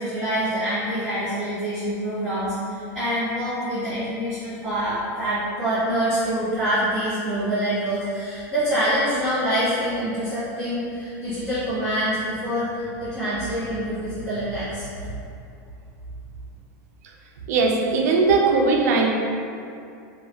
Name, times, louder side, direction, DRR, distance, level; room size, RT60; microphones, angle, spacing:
voice 1, 0.0-14.9, equal, 5° right, -16 dB, 1.0 m, -25 dB
voice 2, 17.5-19.1, right 4 dB, 60° right, 1 dB, 0.4 m, -19 dB
3.2 x 2.2 x 2.2 m, 2.5 s
supercardioid pair, 170°, 10 cm